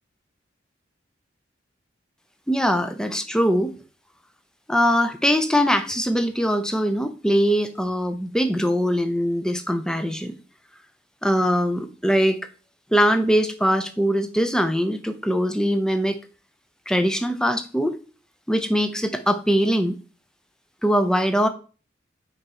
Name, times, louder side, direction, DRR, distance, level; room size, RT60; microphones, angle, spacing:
voice 1, 2.5-3.7 4.7-10.3 11.2-12.4 12.9-16.2 16.9-18.0 18.5-20.0 20.8-21.5, equal, 5° left, 9 dB, 0.4 m, -22 dB
5.2 x 4.7 x 4.2 m, 0.38 s
head